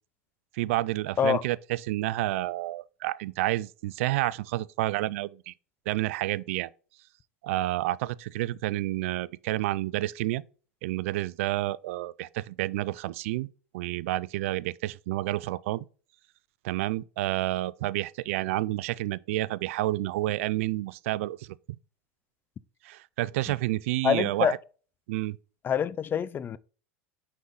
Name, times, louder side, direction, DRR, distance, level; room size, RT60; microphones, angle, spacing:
voice 1, 0.5-5.5 5.9-6.7 7.4-10.4 10.8-13.5 13.7-15.8 16.6-21.8 22.8-24.6 25.1-25.4, right 17 dB, 70° right, 0.4 m, -29 dB
voice 2, 24.0-24.5 25.6-26.6, left 8 dB, 30° left, 0.4 m, -25 dB
6.1 x 5.5 x 3.8 m
hypercardioid pair, 105°, 7 cm